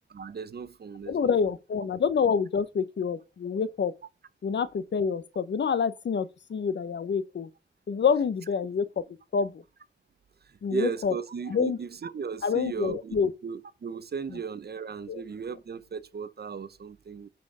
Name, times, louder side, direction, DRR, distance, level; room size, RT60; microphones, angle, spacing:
voice 1, 0.1-1.3 10.7-13.2 13.4-17.3, right 6 dB, 60° right, 0.8 m, -36 dB
voice 2, 1.1-3.9 4.4-7.5 7.9-9.0 9.3-9.6 10.6-11.1 11.5-11.8 12.4-13.3 15.1-15.2, left 6 dB, 75° left, 0.8 m, -27 dB
10.0 x 4.3 x 4.8 m
wide cardioid pair, 95°, 19 cm